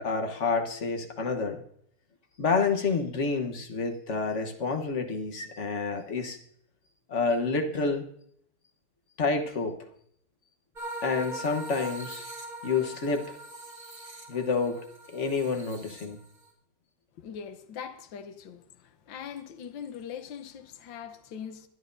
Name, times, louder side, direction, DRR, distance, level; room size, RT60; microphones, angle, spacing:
voice 1, 0.0-1.6 2.4-6.4 7.1-8.0 9.2-9.8 11.0-12.2 12.6-13.4 14.3-16.2, left 4 dB, 40° left, 1.3 m, -29 dB
sound 1, 10.7-16.5, right 2 dB, 20° right, 2.4 m, -41 dB
voice 2, 17.2-21.7, left 8 dB, 70° left, 1.6 m, -41 dB
22.0 x 11.0 x 2.7 m
omnidirectional pair, 2.3 m